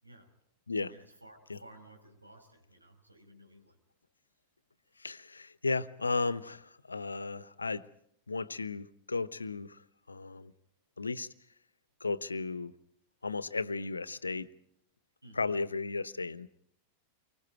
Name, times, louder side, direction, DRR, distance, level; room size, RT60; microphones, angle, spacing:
voice 1, 0.0-0.3 0.9-3.8 4.9-5.0 15.2-15.6, right 1 dB, 85° right, 5.3 m, -55 dB
voice 2, 5.0-7.9 8.3-9.8 10.1-10.5 11.0-11.3 12.0-12.7 13.2-14.5 15.3-16.5, left 3 dB, 80° left, 0.8 m, -34 dB
29.5 x 25.0 x 4.6 m
figure-of-eight pair, 90°, 0 cm